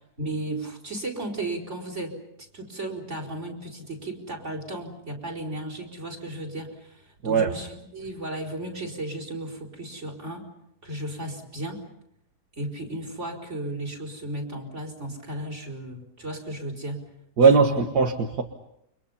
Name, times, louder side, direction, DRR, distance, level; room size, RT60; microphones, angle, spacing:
voice 1, 0.2-2.2 2.5-10.5 10.8-11.8 12.6-17.1 17.5-17.8, right 1 dB, 40° right, 4 dB, 4.9 m, -34 dB
voice 2, 17.4-18.4, right 5 dB, 65° right, 4 dB, 2.1 m, -19 dB
30.0 x 25.5 x 5.6 m, 0.80 s
omnidirectional pair, 1.8 m